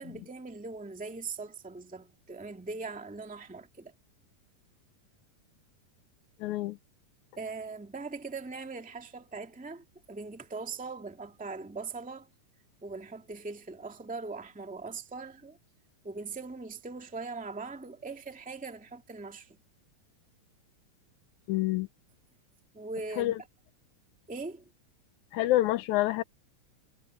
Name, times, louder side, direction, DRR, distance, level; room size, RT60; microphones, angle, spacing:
voice 1, 0.0-3.9 7.4-12.3 12.8-15.6 16.0-19.6 22.7-23.3 24.3-24.6, right 4 dB, 5° right, 1.5 m, -40 dB
voice 2, 6.4-6.8 21.5-21.9 23.2-23.4 25.3-26.2, left 16 dB, 80° left, 1.9 m, -27 dB
omnidirectional pair, 3.8 m